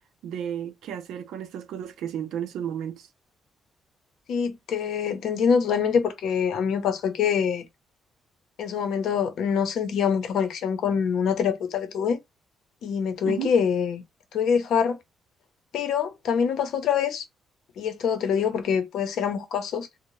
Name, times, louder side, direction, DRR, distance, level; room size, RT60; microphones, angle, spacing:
voice 1, 0.2-3.1 13.2-13.5, right 9 dB, 80° right, 0.5 m, -33 dB
voice 2, 4.3-7.7 8.6-12.2 12.8-14.0 14.3-15.0 15.7-17.2 17.8-19.9, left 7 dB, 75° left, 0.7 m, -25 dB
2.6 x 2.0 x 3.1 m
cardioid pair, 90°, 0 cm